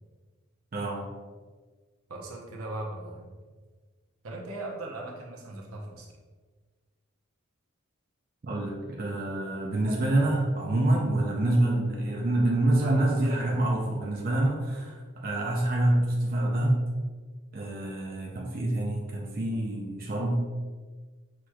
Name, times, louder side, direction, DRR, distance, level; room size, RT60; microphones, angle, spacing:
voice 1, 0.7-1.1 8.4-16.8 17.5-20.4, right 1 dB, 40° right, -2 dB, 0.5 m, -26 dB
voice 2, 2.1-3.4 4.2-6.1 12.8-14.3, right 2 dB, 85° right, -2 dB, 0.8 m, -39 dB
5.9 x 3.0 x 2.3 m, 1.4 s
head